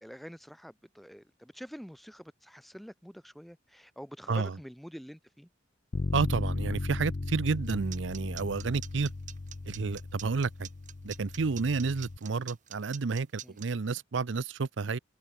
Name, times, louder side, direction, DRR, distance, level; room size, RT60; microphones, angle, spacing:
voice 1, 0.0-5.5 13.4-13.6, equal, ahead, 1.3 m, -47 dB
Bass guitar, 5.9-12.2, left 2 dB, 35° left, 0.5 m, -36 dB
voice 2, 6.1-9.1 9.7-10.7 11.0-15.0, right 4 dB, 70° right, 0.6 m, -30 dB
sound 1, 7.5-13.7, right 11 dB, 45° right, 0.9 m, -45 dB
head